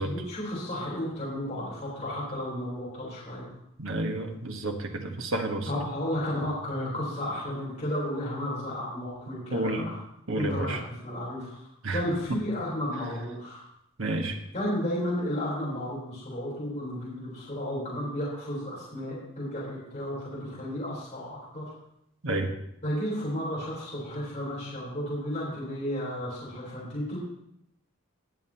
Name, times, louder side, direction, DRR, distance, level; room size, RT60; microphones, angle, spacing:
voice 1, 0.0-3.5 5.7-10.0 10.3-11.6 11.9-13.6 14.5-21.6 22.8-27.2, equal, 35° left, -8 dB, 4.0 m, -33 dB
voice 2, 3.8-5.7 9.5-9.9 10.3-10.8 11.8-12.0 12.3-12.4 14.0-14.4 22.2-22.5, right 2 dB, 85° right, 3 dB, 1.5 m, -30 dB
21.0 x 7.5 x 3.0 m, 0.78 s
head